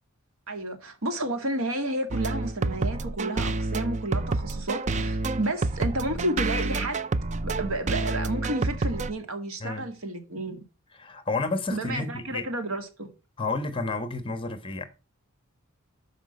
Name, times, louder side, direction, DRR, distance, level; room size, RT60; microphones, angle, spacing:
voice 1, 0.5-7.0 7.4-10.6 11.7-13.1, right 1 dB, 75° right, 2.1 m, -31 dB
sound 1, 2.1-9.1, right 3 dB, 35° right, 0.5 m, -28 dB
voice 2, 11.0-12.4 13.4-14.8, left 3 dB, 25° left, 1.3 m, -30 dB
12.5 x 5.1 x 5.4 m
head